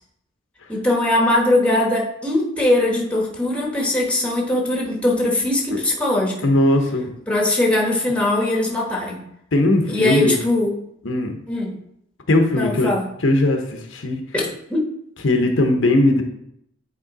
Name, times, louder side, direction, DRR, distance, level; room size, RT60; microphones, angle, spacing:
voice 1, 0.7-6.5 7.3-9.2 9.9-10.7 11.5-11.7 12.5-13.1 14.3-14.8, left 1 dB, 5° left, -1 dB, 1.1 m, -20 dB
voice 2, 6.4-7.1 9.5-10.4 11.0-11.3 12.3-12.9 13.2-14.2 15.2-16.2, left 1 dB, 75° left, 4 dB, 0.9 m, -18 dB
8.7 x 3.2 x 4.0 m, 0.74 s
head